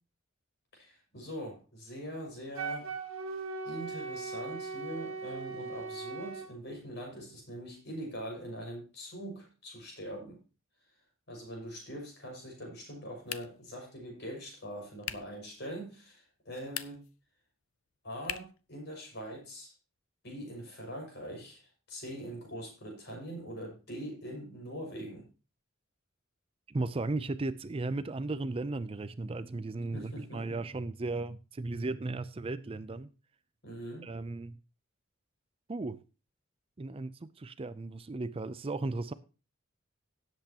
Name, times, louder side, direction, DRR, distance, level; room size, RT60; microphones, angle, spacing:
voice 1, 0.7-2.9 3.6-10.4 11.3-17.0 18.0-19.7 20.2-25.2 29.9-30.6 33.6-34.1, equal, 55° left, 6.0 m, -43 dB
Wind instrument woodwind instrument, 2.5-6.5, right 4 dB, 75° right, 1.6 m, -39 dB
sound 1, 13.2-13.7 15.0-15.4 16.6-17.2 18.2-18.6, left 11 dB, 85° left, 0.7 m, -40 dB
voice 2, 26.7-33.1 34.0-34.6 35.7-36.0 36.8-39.1, right 2 dB, 25° right, 0.4 m, -36 dB
17.0 x 8.1 x 2.9 m
head